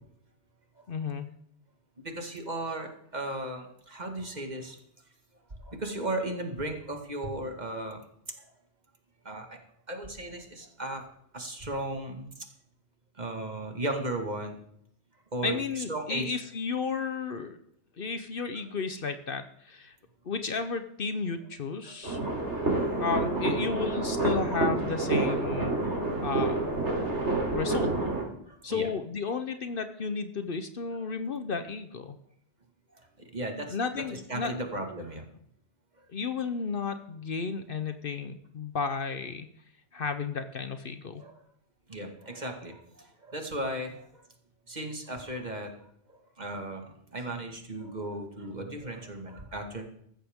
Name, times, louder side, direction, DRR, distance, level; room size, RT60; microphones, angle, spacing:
voice 1, 0.9-1.3 15.4-17.6 18.0-20.0 20.3-22.2 23.0-25.8 26.2-26.6 27.5-27.9 28.6-32.2 33.7-34.5 36.1-39.5 39.9-41.2, left 5 dB, 55° left, 9 dB, 1.0 m, -33 dB
voice 2, 2.0-4.8 5.6-8.0 8.4-8.5 9.3-9.6 9.9-11.0 11.3-12.4 13.2-14.6 15.3-16.4 21.8-22.0 26.0-26.2 28.5-28.9 33.0-33.1 33.3-35.2 41.2-41.4 41.9-44.0 44.7-45.7 46.1-49.8, right 1 dB, 40° right, 3 dB, 2.0 m, -36 dB
sound 1, 22.0-28.2, right 2 dB, 80° right, 3.5 m, -28 dB
15.0 x 13.0 x 3.6 m, 0.71 s
omnidirectional pair, 1.2 m